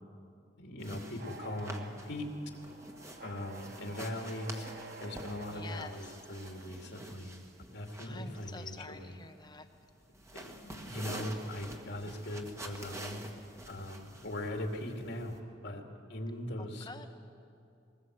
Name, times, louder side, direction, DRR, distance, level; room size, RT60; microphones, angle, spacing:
voice 1, 0.6-2.3 3.2-4.7 5.0-7.3 7.7-9.2 10.3-13.2 13.7-15.4 15.6-15.8 16.1-16.9, left 1 dB, 65° left, 3 dB, 2.5 m, -40 dB
sound 1, 0.8-15.4, right 1 dB, 15° right, 1.8 m, -48 dB
sound 2, 1.2-6.8, right 3 dB, 60° right, 1.4 m, -50 dB
voice 2, 5.5-6.1 8.0-9.7 16.6-17.1, left 3 dB, 25° left, 7 dB, 1.1 m, -47 dB
21.5 x 19.5 x 7.9 m, 2.5 s
head